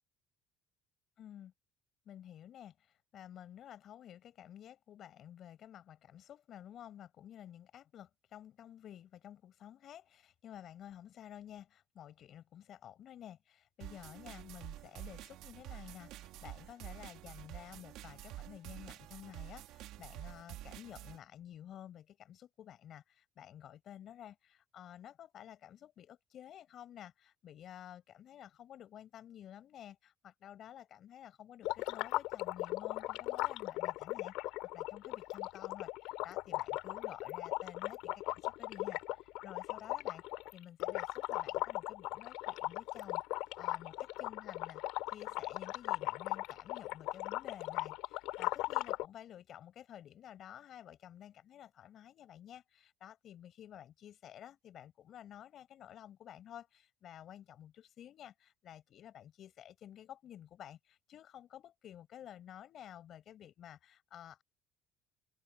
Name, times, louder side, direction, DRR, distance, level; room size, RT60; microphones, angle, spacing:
voice 1, 1.2-1.5 2.0-34.3 34.7-40.2 40.5-44.8 45.1-64.4, left 10 dB, 45° left, 6.0 m, -52 dB
sound 1, 13.8-21.2, right 14 dB, 65° right, 2.0 m, -49 dB
sound 2, 31.6-49.1, left 19 dB, 80° left, 3.9 m, -38 dB
open air
cardioid pair, 160°, 0 cm